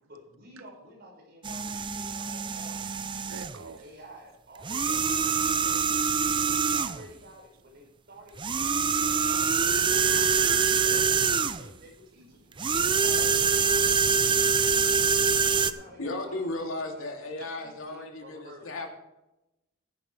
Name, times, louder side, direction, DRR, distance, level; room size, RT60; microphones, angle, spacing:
voice 1, 0.1-2.8 3.5-5.8 6.5-13.9 15.6-18.8, right 1 dB, 50° right, 5.4 m, -50 dB
sound 1, 1.4-3.6 4.6-7.1 8.4-11.7 12.6-15.7, right 6 dB, 25° right, 0.5 m, -25 dB
voice 2, 3.3-3.9 10.7-11.1 12.5-12.6, right 5 dB, 75° right, 0.6 m, -49 dB
voice 3, 15.4-18.9, left 2 dB, 75° left, 2.9 m, -36 dB
15.5 x 10.5 x 3.4 m
head